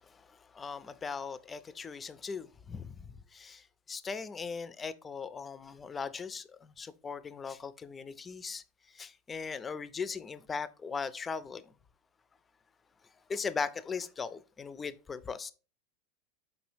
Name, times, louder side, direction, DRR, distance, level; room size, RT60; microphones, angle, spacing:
voice 1, 0.1-8.6 8.9-11.6 13.3-15.5, left 5 dB, 20° left, 0.3 m, -39 dB
5.1 x 3.0 x 3.2 m
hypercardioid pair, 105°, 0 cm